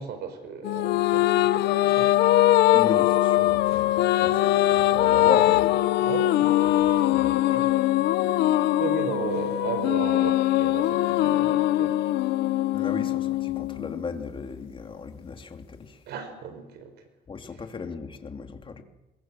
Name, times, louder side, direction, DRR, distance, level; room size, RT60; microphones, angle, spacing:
voice 1, 0.0-2.2 6.0-7.9 8.2-8.5 8.8-12.0 16.1-16.9 17.5-17.6, right 6 dB, 75° right, 9 dB, 5.1 m, -36 dB
sound 1, 0.6-14.3, left 15 dB, 80° left, 0.9 m, -22 dB
voice 2, 2.7-5.8 6.7-6.8 7.1-7.3 12.7-16.0 17.3-18.8, left 5 dB, 30° left, 5 dB, 2.8 m, -35 dB
27.0 x 22.0 x 7.6 m, 1.1 s
cardioid pair, 110°, 17 cm